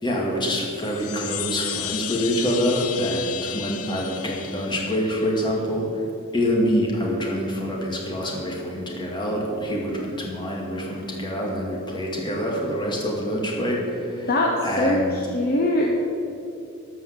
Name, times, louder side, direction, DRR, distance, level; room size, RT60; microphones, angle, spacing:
voice 1, 0.0-6.0 6.3-14.3 14.6-15.2, equal, 20° left, -2 dB, 2.2 m, -26 dB
Chime, 0.7-5.4, left 11 dB, 80° left, 0.6 m, -33 dB
voice 2, 14.3-16.0, left 1 dB, 45° left, 0 dB, 0.9 m, -22 dB
13.5 x 5.6 x 8.2 m, 2.6 s
head